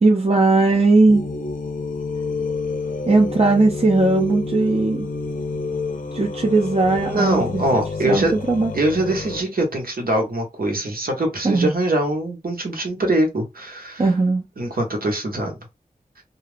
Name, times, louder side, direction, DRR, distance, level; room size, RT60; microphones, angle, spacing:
voice 1, 0.0-1.2 3.1-5.1 6.1-7.6 8.1-8.7 11.4-11.7 14.0-14.4, right 3 dB, 40° right, 0.6 m, -18 dB
sound 1, 1.1-9.4, left 3 dB, 65° left, 0.6 m, -29 dB
voice 2, 7.0-8.3 8.7-14.1 14.6-15.6, right 1 dB, 80° right, 1.0 m, -23 dB
2.4 x 2.3 x 3.3 m
wide cardioid pair, 55°, 15 cm